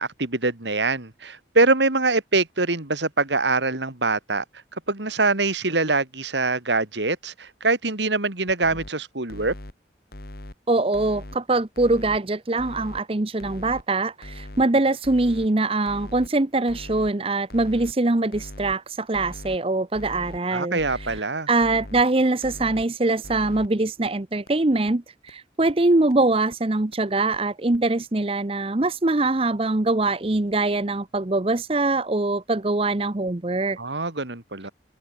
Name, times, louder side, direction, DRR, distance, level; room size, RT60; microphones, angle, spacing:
voice 1, 0.0-4.4 4.9-9.5 20.5-21.5 33.8-34.7, right 3 dB, 80° right, 2.8 m, -24 dB
sound 1, 8.5-8.9 9.3-9.7 10.1-10.5 10.9-11.4 11.8-12.2 12.6-13.0 13.4-13.8 14.2-14.7 15.0-15.5 15.9-16.3 16.7-17.1 17.5-17.9 18.3-18.8 19.1-19.6 19.9-20.4 20.8-21.2 21.6-22.0 22.4-22.9 23.2-23.7 24.1-24.2 24.5-24.6 24.9-25.0 25.3-25.4 25.7-25.8 26.1-26.2 26.5-26.6 26.9-27.0 27.3-27.4 27.7-27.8, left 1 dB, 55° left, 2.1 m, -40 dB
voice 2, 10.7-20.8 21.5-33.8, right 2 dB, 30° right, 0.8 m, -23 dB
open air
head